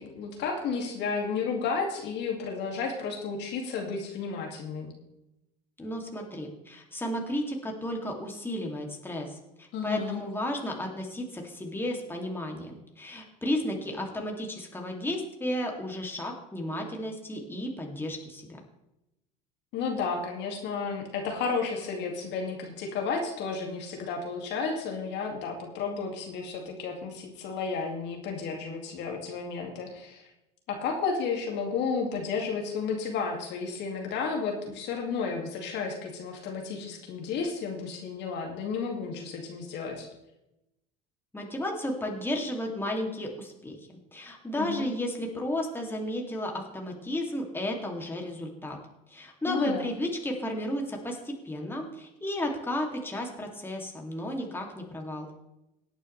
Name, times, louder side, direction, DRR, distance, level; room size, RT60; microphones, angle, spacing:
voice 1, 0.0-4.9 9.7-10.2 19.7-30.2 30.7-40.1 44.6-44.9 49.5-49.9, left 5 dB, 60° left, 1 dB, 2.3 m, -32 dB
voice 2, 5.8-18.6 41.3-43.8 44.1-48.8 49.1-55.3, left 1 dB, 10° left, 0 dB, 2.6 m, -33 dB
18.0 x 9.0 x 3.3 m, 0.91 s
supercardioid pair, 90°, 20 cm